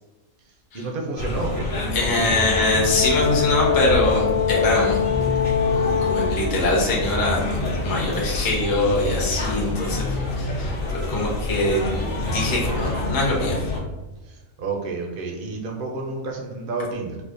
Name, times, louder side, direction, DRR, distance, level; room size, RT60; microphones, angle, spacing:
voice 1, 0.7-1.7 14.3-17.2, right 3 dB, 60° right, 1 dB, 0.6 m, -30 dB
sound 1, 1.2-13.8, left 2 dB, 50° left, 0.9 m, -27 dB
voice 2, 1.9-5.1 5.7-10.7 11.1-11.9 12.2-13.6, left 1 dB, 25° left, -4 dB, 0.5 m, -23 dB
Brass instrument, 2.3-6.5, left 8 dB, 80° left, 1.0 m, -23 dB
4.7 x 2.1 x 2.5 m, 1.1 s
omnidirectional pair, 1.5 m